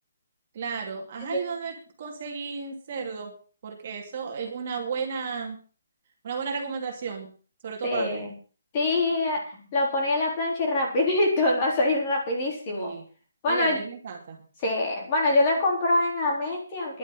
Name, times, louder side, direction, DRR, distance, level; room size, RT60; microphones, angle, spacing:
voice 1, 0.5-3.4 3.6-5.6 6.2-7.3 7.6-8.3 12.7-13.1 13.5-14.4, right 5 dB, 30° right, 1 dB, 2.6 m, -33 dB
voice 2, 7.8-8.3 8.7-12.9 13.4-13.8 14.6-17.0, left 2 dB, 20° left, 0 dB, 3.7 m, -25 dB
11.5 x 9.3 x 7.6 m, 0.40 s
hypercardioid pair, 180°, 0 cm